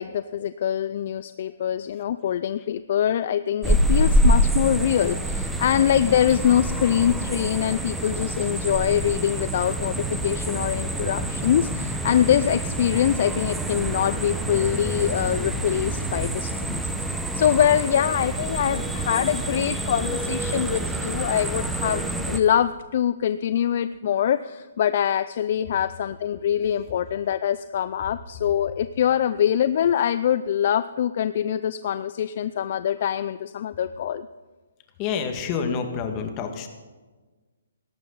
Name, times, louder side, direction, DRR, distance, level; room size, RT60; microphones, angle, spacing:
voice 1, 0.0-16.8 17.3-34.3, left 10 dB, 50° left, 14 dB, 0.5 m, -24 dB
sound 1, 3.6-22.4, right 1 dB, 5° right, 1.0 m, -26 dB
voice 2, 35.0-36.7, left 6 dB, 30° left, 5 dB, 2.1 m, -28 dB
18.0 x 14.0 x 4.1 m, 1.3 s
hypercardioid pair, 140°, 0 cm